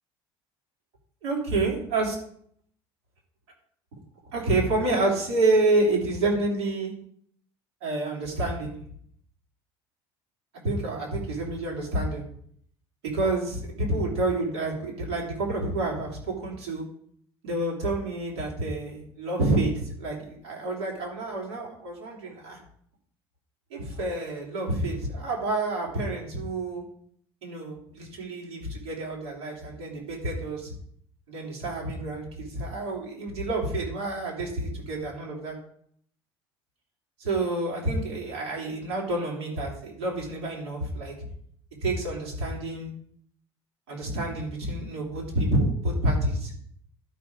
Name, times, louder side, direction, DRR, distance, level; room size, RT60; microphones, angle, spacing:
voice 1, 1.2-2.1 4.3-6.9 7.8-8.8 10.6-12.2 13.0-16.8 17.4-22.6 23.7-26.8 27.4-30.7 31.3-35.6 37.2-41.1 41.8-42.9 43.9-46.5, right 2 dB, 85° right, -2 dB, 3.2 m, -28 dB
12.0 x 5.1 x 4.7 m, 0.64 s
hypercardioid pair, 65°, 14 cm